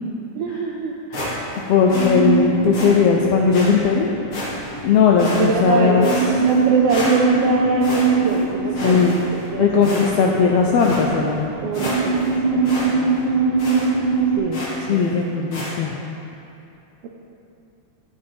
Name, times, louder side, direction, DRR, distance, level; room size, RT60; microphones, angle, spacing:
voice 1, 0.3-1.0 5.2-6.1 6.4-9.3 9.5-10.0 10.7-11.3 11.6-12.2 12.5-13.1 14.4-15.3, right 5 dB, 80° right, 0 dB, 1.4 m, -24 dB
sound 1, 1.1-1.6 1.9-2.1 2.7-2.9 3.5-3.7 4.3-4.8 5.2-5.7 6.0-6.6 6.9-7.5 7.8-8.4 8.7-9.4 9.8-10.3 10.8-11.0 11.4-11.5 11.7-12.3 12.7-12.9 13.1-13.2 13.6-13.9 14.5-14.8 15.5-15.7, left 1 dB, 50° left, 2.5 m, -30 dB
voice 2, 1.7-4.1 4.8-6.1 8.8-9.1 9.6-11.5 14.9-15.9, left 6 dB, 80° left, 0 dB, 1.4 m, -17 dB
sound 2, 1.8-14.4, right 4 dB, 50° right, 2.7 m, -23 dB
12.0 x 7.6 x 3.5 m, 2.7 s
omnidirectional pair, 3.3 m